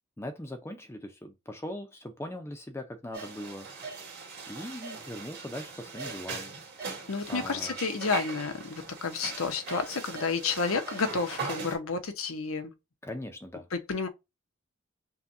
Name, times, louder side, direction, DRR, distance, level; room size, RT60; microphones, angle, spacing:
voice 1, 0.2-3.9 4.5-6.5 7.3-7.8 13.0-13.7, left 1 dB, 10° left, 0.5 m, -40 dB
sound 1, 3.1-11.8, right 4 dB, 50° right, 2.0 m, -40 dB
voice 2, 7.1-12.7 13.7-14.1, left 4 dB, 90° left, 0.8 m, -31 dB
5.7 x 2.3 x 2.6 m
head